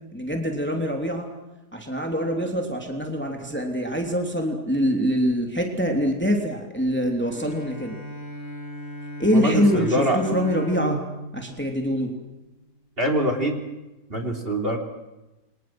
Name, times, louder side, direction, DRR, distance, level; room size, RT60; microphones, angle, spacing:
voice 1, 0.1-1.3 1.7-7.9 9.2-11.0 11.3-12.1, equal, 5° left, 2 dB, 3.1 m, -24 dB
Bowed string instrument, 7.2-12.6, equal, 30° left, 4.5 m, -37 dB
voice 2, 9.3-10.2 13.0-13.6 14.1-14.8, right 1 dB, 35° right, 5 dB, 3.9 m, -24 dB
29.0 x 27.0 x 6.2 m, 1.0 s
omnidirectional pair, 1.8 m